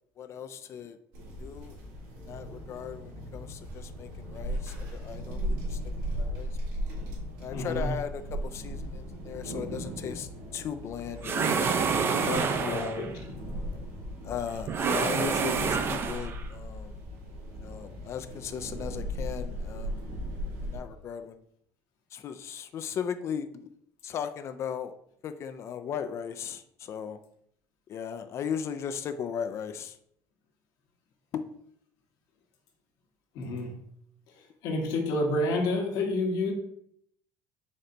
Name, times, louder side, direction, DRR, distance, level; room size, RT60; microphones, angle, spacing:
voice 1, 0.2-1.0 1.4-1.8 2.2-5.8 6.2-6.5 7.4-11.6 12.3-13.1 14.2-17.0 17.6-20.0 20.6-21.4 22.1-23.7 24.0-24.9 25.2-27.2 27.9-30.0 31.3-31.4, left 8 dB, 45° left, 10 dB, 0.3 m, -37 dB
sound 1, 1.1-20.8, equal, 80° right, 1.7 m, -37 dB
voice 2, 7.5-7.9 12.6-13.1 33.3-33.7 34.6-36.5, left 2 dB, 70° left, 2 dB, 1.2 m, -29 dB
sound 2, 11.2-13.1 14.7-16.4, right 5 dB, 35° right, 0.4 m, -27 dB
4.2 x 3.3 x 3.8 m, 0.70 s
cardioid pair, 125°, 7 cm